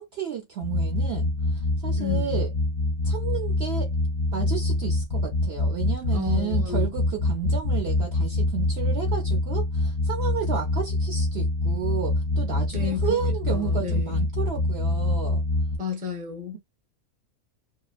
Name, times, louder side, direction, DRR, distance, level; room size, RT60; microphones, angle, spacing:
voice 1, 0.0-2.5 3.0-3.9 4.3-15.4, right 8 dB, 60° right, 0.7 m, -32 dB
sound 1, 0.6-15.8, left 2 dB, 50° left, 0.6 m, -25 dB
voice 2, 2.0-2.4 6.1-6.9 12.7-14.2 15.8-16.6, left 7 dB, 10° right, 0.5 m, -32 dB
2.8 x 2.0 x 2.4 m
omnidirectional pair, 1.6 m